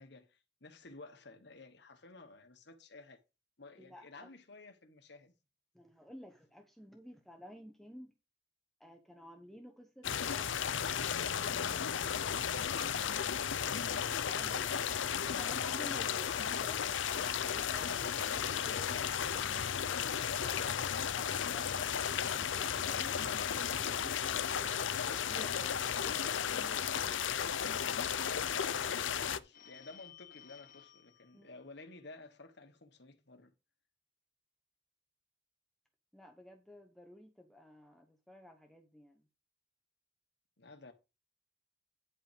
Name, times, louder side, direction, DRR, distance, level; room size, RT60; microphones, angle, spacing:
voice 1, 0.0-3.2 3.6-5.3 13.5-14.3 19.2-19.7 20.4-21.3 28.2-33.5 40.6-40.9, left 3 dB, 60° left, 1.3 m, -53 dB
voice 2, 3.8-4.3 5.7-8.1 8.8-10.7 14.0-14.8 15.3-19.6 20.4-21.8 22.3-24.8 25.1-27.2 31.3-31.6 36.1-39.2, equal, ahead, 0.9 m, -54 dB
sound 1, 10.0-29.4, left 8 dB, 80° left, 0.6 m, -34 dB
Telephone, 29.5-32.0, left 10 dB, 45° left, 1.1 m, -57 dB
9.9 x 5.4 x 5.1 m
head